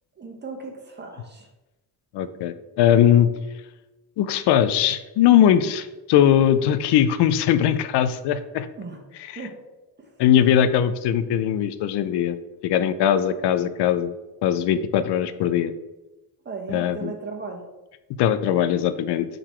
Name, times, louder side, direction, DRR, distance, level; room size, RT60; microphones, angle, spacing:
voice 1, 0.1-1.5 8.7-9.0 9.3-9.6 10.0-10.1 16.4-17.6, right 4 dB, 25° right, 2 dB, 1.1 m, -36 dB
voice 2, 2.1-3.3 4.2-8.7 10.2-12.4 12.6-14.1 14.4-15.7 16.7-17.1 18.2-19.3, left 10 dB, 85° left, 12 dB, 0.5 m, -20 dB
6.4 x 3.9 x 4.4 m, 1.1 s
cardioid pair, 130°, 40 cm